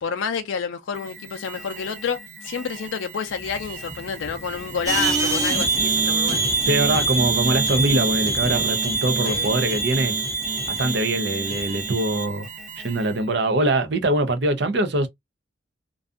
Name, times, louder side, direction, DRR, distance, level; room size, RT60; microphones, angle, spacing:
voice 1, 0.0-6.4 9.2-9.5, left 6 dB, 85° left, 0.4 m, -29 dB
Alarm, 0.9-13.3, right 4 dB, 45° right, 0.9 m, -41 dB
sound 1, 3.3-8.7, left 1 dB, 35° left, 0.6 m, -40 dB
sound 2, 4.9-12.3, right 3 dB, 15° right, 0.6 m, -24 dB
voice 2, 6.6-10.1 10.7-12.5 12.8-15.1, right 2 dB, 60° right, 0.5 m, -23 dB
2.5 x 2.3 x 2.3 m
head